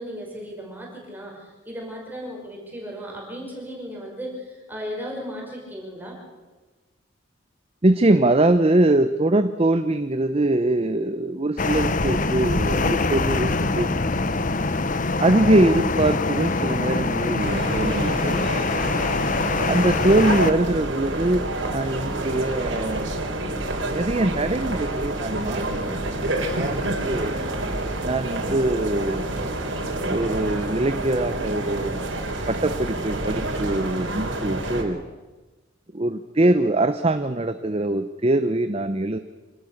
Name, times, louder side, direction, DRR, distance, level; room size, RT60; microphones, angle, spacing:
voice 1, 0.0-6.2, equal, 10° right, -2 dB, 5.4 m, -36 dB
voice 2, 7.8-14.0 15.2-18.4 19.7-23.1 23.8-27.4 28.0-29.3 30.0-32.1 32.5-35.0 35.9-39.2, right 2 dB, 30° right, 10 dB, 0.8 m, -23 dB
sound 1, 11.6-20.5, left 3 dB, 40° left, 0.9 m, -24 dB
sound 2, 17.4-34.8, right 1 dB, 75° right, 3.9 m, -28 dB
26.0 x 18.0 x 6.6 m, 1.2 s
head